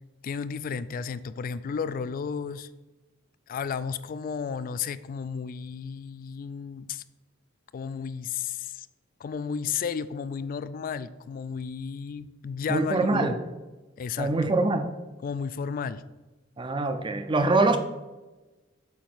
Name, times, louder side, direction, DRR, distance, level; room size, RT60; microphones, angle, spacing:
voice 1, 0.2-2.7 3.5-7.0 7.7-8.9 9.2-13.4 14.0-14.5 15.2-16.0, left 6 dB, 45° left, 15 dB, 0.3 m, -33 dB
voice 2, 12.7-13.4 14.2-14.9 16.6-17.8, right 2 dB, 25° right, 8 dB, 0.5 m, -24 dB
8.2 x 2.8 x 6.1 m, 1.1 s
head